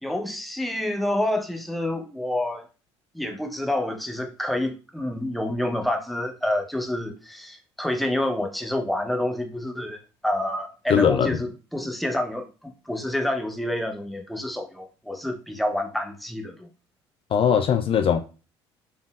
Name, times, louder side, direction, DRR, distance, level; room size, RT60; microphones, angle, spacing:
voice 1, 0.0-2.7 3.1-16.7, left 1 dB, ahead, 0.8 m, -28 dB
voice 2, 10.9-11.4 17.3-18.2, left 7 dB, 40° left, 0.5 m, -20 dB
4.1 x 3.5 x 2.4 m
hypercardioid pair, 60°, 14 cm